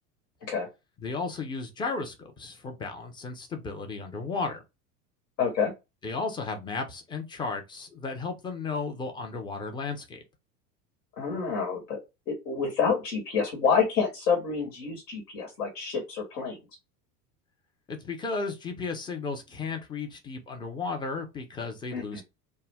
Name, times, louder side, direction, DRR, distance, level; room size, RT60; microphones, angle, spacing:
voice 1, 1.0-4.6 6.0-10.2 17.9-22.2, left 4 dB, 10° left, 0.4 m, -34 dB
voice 2, 5.4-5.7 11.2-12.0 12.3-16.6 21.9-22.2, left 6 dB, 75° left, 1.2 m, -28 dB
2.1 x 2.1 x 3.3 m
hypercardioid pair, 80°, 49 cm